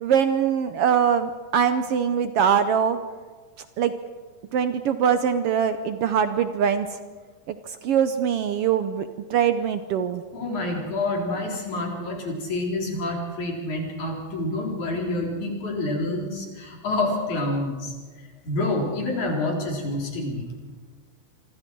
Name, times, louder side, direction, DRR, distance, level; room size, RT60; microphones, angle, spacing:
voice 1, 0.0-3.0 3.8-3.9 4.5-7.0 7.5-10.2, right 8 dB, 70° right, 10 dB, 1.5 m, -23 dB
voice 2, 10.3-17.9 18.4-20.5, left 2 dB, 85° left, 0 dB, 5.2 m, -28 dB
26.5 x 25.0 x 4.6 m, 1.4 s
omnidirectional pair, 3.3 m